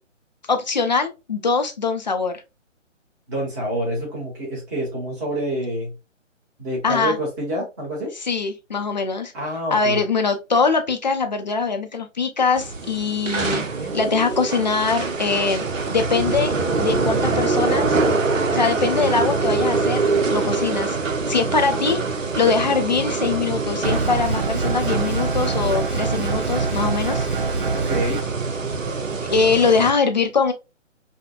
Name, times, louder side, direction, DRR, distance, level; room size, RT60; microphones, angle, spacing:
voice 1, 0.5-2.4 6.8-7.2 8.2-9.3 9.7-15.6 15.9-16.5 16.8-18.0 18.5-21.0 21.3-22.0 22.4-27.3 29.2-30.5, left 4 dB, 35° left, 0.5 m, -22 dB
voice 2, 3.3-5.9 6.6-8.1 9.3-10.0 27.7-28.2, right 1 dB, 15° right, 0.9 m, -27 dB
sound 1, 12.6-29.9, right 3 dB, 85° right, 0.7 m, -24 dB
sound 2, 23.8-28.2, right 4 dB, 45° right, 0.4 m, -25 dB
5.0 x 2.1 x 2.3 m
figure-of-eight pair, 140°, 38 cm